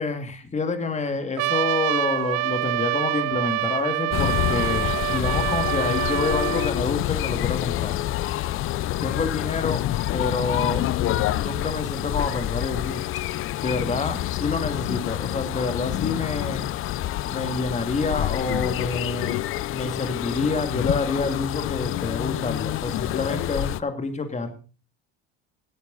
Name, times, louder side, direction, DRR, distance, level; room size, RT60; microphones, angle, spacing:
voice 1, 0.0-8.0 9.0-9.9 10.1-13.0 13.6-16.6 17.3-24.5, left 3 dB, 20° left, 7 dB, 2.4 m, -28 dB
Trumpet, 1.4-6.7, right 17 dB, 60° right, 0.6 m, -26 dB
sound 1, 4.1-23.8, left 14 dB, 45° left, 0.6 m, -27 dB
17.0 x 8.2 x 4.1 m, 0.35 s
supercardioid pair, 100°, 30 cm